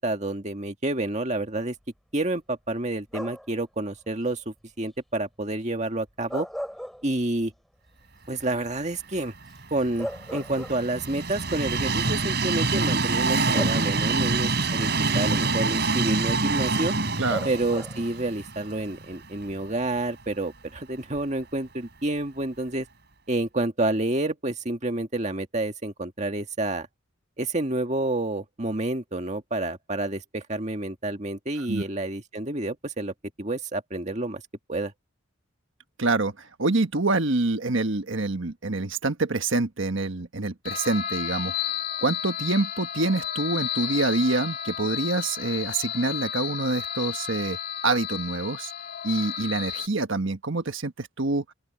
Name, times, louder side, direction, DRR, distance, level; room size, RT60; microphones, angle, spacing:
voice 1, 0.0-1.8 2.1-6.5 7.0-7.5 8.3-9.3 9.7-14.9 15.1-16.9 17.4-22.9 23.3-26.9 27.4-34.4 34.7-34.9, right 2 dB, 35° right, 1.9 m, -29 dB
sound 1, 3.1-3.6 6.1-7.5 7.9-8.0 9.5-9.6 10.0-11.1 12.2-12.3 13.5-14.3 17.3-18.2, equal, ahead, 4.3 m, -36 dB
Train, 9.4-19.5 20.0-20.1 21.2-21.3, right 3 dB, 50° right, 6.2 m, -26 dB
voice 2, 17.2-17.5 31.7-31.8 36.0-41.5 42.0-47.6 47.8-48.7 49.0-51.4, right 3 dB, 70° right, 1.4 m, -26 dB
sound 2, 40.6-49.9, left 9 dB, 45° left, 2.5 m, -32 dB
open air
head